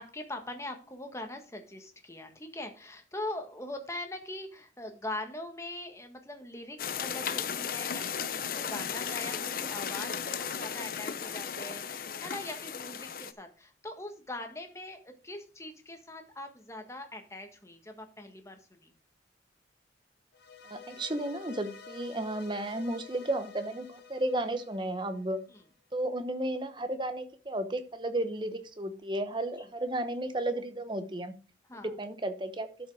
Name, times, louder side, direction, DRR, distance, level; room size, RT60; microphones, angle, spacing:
voice 1, 0.0-18.9 25.5-25.6 29.6-29.7 31.7-31.9, left 1 dB, 15° left, 5 dB, 1.5 m, -42 dB
sound 1, 6.8-13.3, left 7 dB, 50° left, 0.7 m, -35 dB
sound 2, 20.3-25.6, left 6 dB, 70° left, 1.5 m, -50 dB
voice 2, 20.7-25.4 25.9-31.3 31.8-32.7, right 1 dB, 25° right, 9 dB, 1.0 m, -33 dB
12.0 x 5.5 x 4.8 m, 0.36 s
head